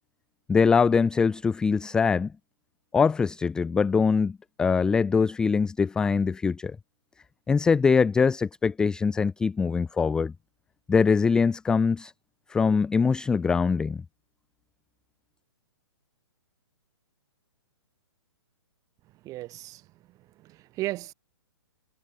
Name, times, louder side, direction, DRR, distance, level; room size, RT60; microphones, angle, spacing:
voice 1, 0.5-2.3 2.9-6.8 7.5-10.3 10.9-12.1 12.5-14.0, left 5 dB, 5° left, 0.3 m, -23 dB
voice 2, 19.2-21.1, right 17 dB, 25° right, 1.8 m, -36 dB
hypercardioid pair, 145°, 15 cm